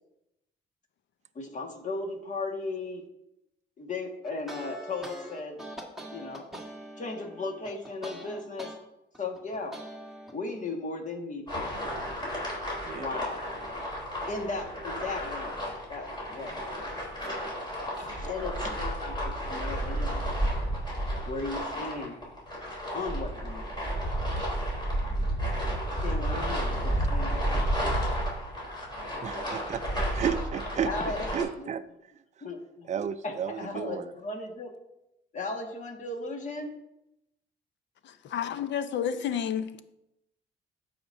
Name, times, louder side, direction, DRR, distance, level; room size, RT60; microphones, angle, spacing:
voice 1, 1.3-3.0 3.8-5.6 6.1-6.4 7.0-8.7 9.2-9.7 10.3-11.6 12.9-13.4 14.3-15.6 15.9-16.5 18.0-20.3 21.3-22.2 22.9-23.7 26.0-27.6 30.8-31.2 31.6-31.7 32.4-32.9 33.2-34.7 35.3-36.7, left 3 dB, 40° left, 1.6 m, -36 dB
sound 1, 4.2-8.8 9.1-10.3, right 1 dB, ahead, 1.5 m, -43 dB
sound 2, 11.5-31.4, equal, 20° left, 3.4 m, -32 dB
voice 2, 29.2-29.8 30.1-30.9 31.3-31.8 32.9-34.1, right 8 dB, 35° right, 0.4 m, -32 dB
voice 3, 38.0-39.9, left 8 dB, 65° left, 0.6 m, -31 dB
15.0 x 5.1 x 2.6 m
cardioid pair, 90°, 20 cm